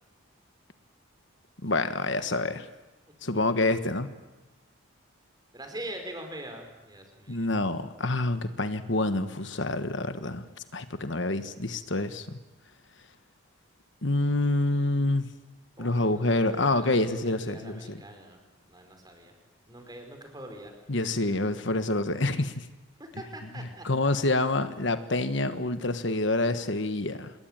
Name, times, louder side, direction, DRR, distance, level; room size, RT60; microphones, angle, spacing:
voice 1, 1.6-2.7 3.2-4.1 7.3-10.4 10.7-12.4 14.0-15.3 15.8-18.0 20.9-22.6 23.8-27.3, left 2 dB, 60° left, 10 dB, 1.5 m, -27 dB
voice 2, 3.3-3.7 5.5-7.5 15.8-19.3 19.7-20.7 23.0-24.1, right 1 dB, 20° right, 5 dB, 5.1 m, -43 dB
27.0 x 21.0 x 8.9 m, 1.1 s
head